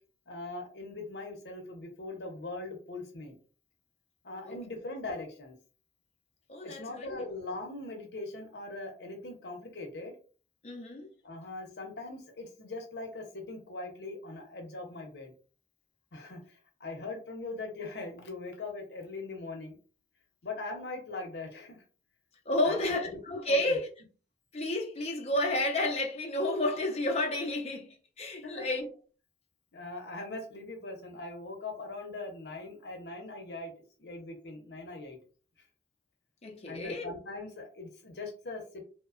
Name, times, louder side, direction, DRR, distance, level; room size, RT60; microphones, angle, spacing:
voice 1, 0.3-3.4 4.2-5.6 6.6-10.1 11.2-15.3 16.1-19.8 20.4-21.8 22.6-23.2 23.5-23.8 28.4-28.7 29.7-33.7 34.0-35.2 36.7-38.8, left 2 dB, 80° left, 0.7 m, -41 dB
voice 2, 6.5-7.2 10.6-11.1 22.5-23.9 24.5-28.9 36.4-37.1, left 1 dB, 35° left, 0.6 m, -31 dB
2.7 x 2.2 x 2.4 m
head